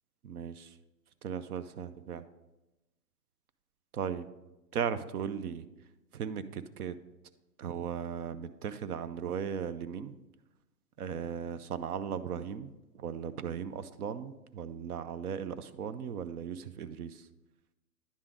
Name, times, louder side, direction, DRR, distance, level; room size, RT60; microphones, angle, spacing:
voice 1, 0.2-0.8 1.2-2.2 3.9-4.3 4.7-5.7 6.1-6.9 7.6-10.1 11.0-17.3, right 8 dB, 65° right, 13 dB, 0.6 m, -37 dB
10.0 x 3.7 x 5.0 m, 1.0 s
hypercardioid pair, 150°, 48 cm